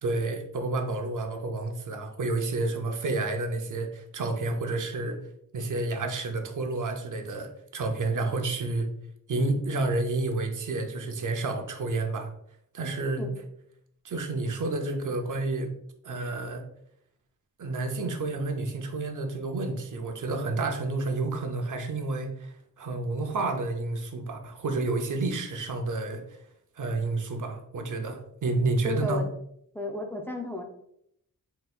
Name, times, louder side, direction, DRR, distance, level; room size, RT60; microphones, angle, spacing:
voice 1, 0.0-5.2 5.5-8.9 9.3-12.3 12.7-13.3 14.0-15.7 16.0-16.6 17.6-26.4 26.8-29.2, right 2 dB, 65° right, 5 dB, 0.6 m, -30 dB
voice 2, 28.8-29.3 29.7-30.6, left 2 dB, 5° left, 2 dB, 0.4 m, -33 dB
4.0 x 3.9 x 2.3 m, 0.73 s
wide cardioid pair, 130°, 34 cm